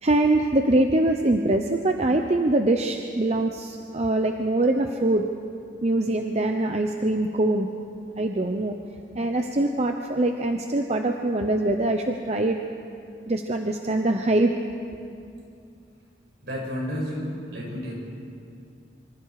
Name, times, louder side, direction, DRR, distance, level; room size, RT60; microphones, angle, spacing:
voice 1, 0.0-5.3 5.8-7.7 8.2-8.8 9.1-12.6 13.3-14.5, right 2 dB, 35° right, 4 dB, 0.9 m, -23 dB
voice 2, 16.4-17.9, equal, 70° right, -3 dB, 7.6 m, -31 dB
26.5 x 25.5 x 4.9 m, 2.4 s
head